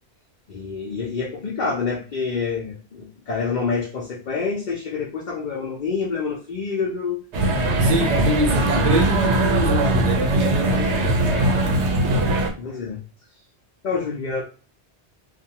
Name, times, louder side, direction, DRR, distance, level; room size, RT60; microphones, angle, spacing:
voice 1, 0.5-7.2 10.3-11.6 12.6-13.0 13.8-14.4, left 5 dB, 50° left, 0.7 m, -28 dB
sound 1, 7.3-12.5, right 1 dB, 85° right, 0.9 m, -20 dB
voice 2, 7.8-11.8, right 2 dB, 50° right, 0.6 m, -24 dB
2.5 x 2.3 x 2.8 m
omnidirectional pair, 1.1 m